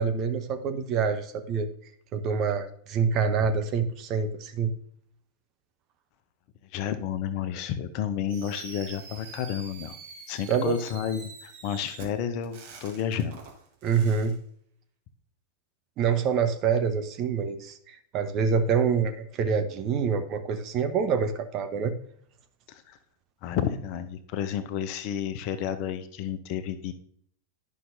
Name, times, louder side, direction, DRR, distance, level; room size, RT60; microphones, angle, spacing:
voice 1, 0.0-1.7 2.1-4.7 10.5-10.8 13.8-14.3 16.0-21.9, right 6 dB, 35° right, 8 dB, 0.8 m, -26 dB
voice 2, 6.7-10.0 10.3-13.4 22.7-23.0 23.4-26.9, left 9 dB, 45° left, 11 dB, 0.7 m, -31 dB
Fireworks, 8.3-14.3, right 5 dB, 55° right, 1.8 m, -46 dB
11.0 x 5.8 x 2.6 m, 0.64 s
figure-of-eight pair, 90°, 0 cm